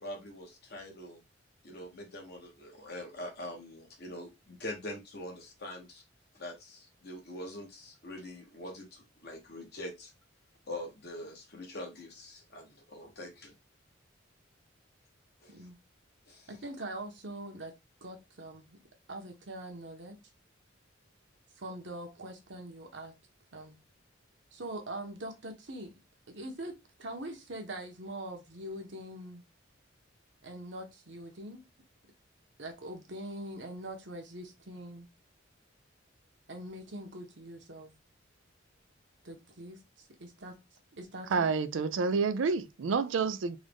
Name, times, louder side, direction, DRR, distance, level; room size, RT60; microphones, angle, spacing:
voice 1, 0.0-1.2 1.6-6.0 6.3-10.1 10.7-13.5 15.4-15.5 16.3-16.5, left 1 dB, 55° left, 1.4 m, -44 dB
voice 2, 16.5-17.7 18.0-18.8 19.1-20.2 21.6-23.1 23.5-23.8 24.5-25.9 26.3-29.4 30.4-31.6 32.6-35.1 36.5-37.9 39.2-40.5 40.9-41.5, right 1 dB, 60° right, 1.1 m, -43 dB
voice 3, 41.3-43.6, right 5 dB, 80° right, 0.4 m, -29 dB
3.7 x 2.5 x 3.4 m
head